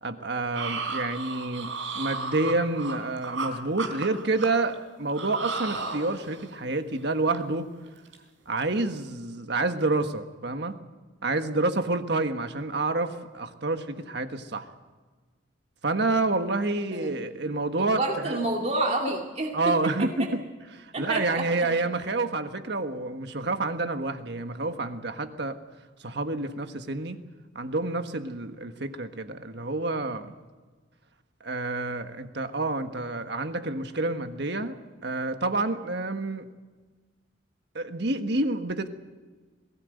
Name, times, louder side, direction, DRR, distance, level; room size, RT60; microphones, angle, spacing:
voice 1, 0.0-7.7 8.5-10.7 11.2-14.7 15.8-18.4 19.5-20.4 20.7-25.6 26.0-27.2 27.5-30.3 31.4-34.8 35.0-36.5 37.7-38.9, right 2 dB, 60° right, 8 dB, 1.5 m, -28 dB
sound 1, 0.5-3.5 3.8-4.7 5.1-6.5 6.9-7.0 7.3-7.5 7.9-8.2 8.5-8.7, right 4 dB, 85° right, 3.7 m, -34 dB
voice 2, 17.8-19.7 20.9-21.7, right 2 dB, 35° right, 0 dB, 2.3 m, -29 dB
21.5 x 17.0 x 9.2 m, 1.4 s
head